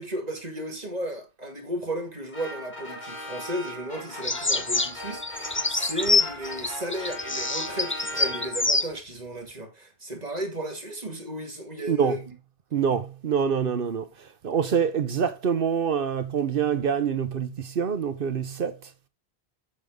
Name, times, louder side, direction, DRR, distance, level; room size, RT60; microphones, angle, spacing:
voice 1, 0.0-12.2, right 1 dB, 40° right, 2.3 m, -34 dB
sound 1, 2.3-8.9, left 1 dB, 45° left, 2.5 m, -39 dB
sound 2, 4.2-8.9, left 3 dB, 15° left, 0.4 m, -26 dB
voice 2, 12.7-14.1 14.4-18.8, right 7 dB, 60° right, 0.9 m, -25 dB
8.5 x 6.9 x 3.6 m
omnidirectional pair, 1.1 m